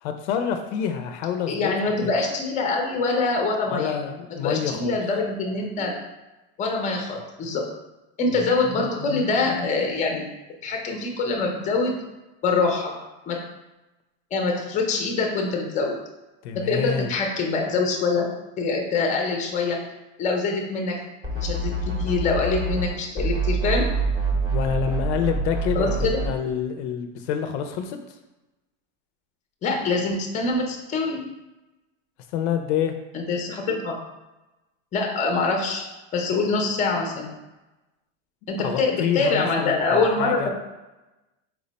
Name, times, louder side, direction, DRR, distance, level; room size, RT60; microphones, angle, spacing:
voice 1, 0.0-1.7 2.0-2.1 3.7-5.0 16.4-17.1 24.5-28.2 32.3-33.0 38.6-40.5, left 8 dB, 65° left, 7 dB, 0.5 m, -27 dB
voice 2, 1.5-4.0 4.4-6.0 6.6-7.7 8.2-10.3 10.6-12.0 12.4-12.9 13.3-13.4 14.3-16.0 16.5-18.3 18.6-19.8 20.2-21.0 21.3-21.7 22.0-23.9 25.7-26.2 29.6-31.2 33.1-34.0 34.9-35.8 36.1-37.3 38.5-40.5, left 3 dB, 20° left, 1 dB, 0.6 m, -24 dB
sound 1, 21.2-22.9 23.2-26.3, right 3 dB, 10° right, 0.7 m, -26 dB
4.5 x 2.1 x 4.0 m, 1.0 s
supercardioid pair, 145°, 37 cm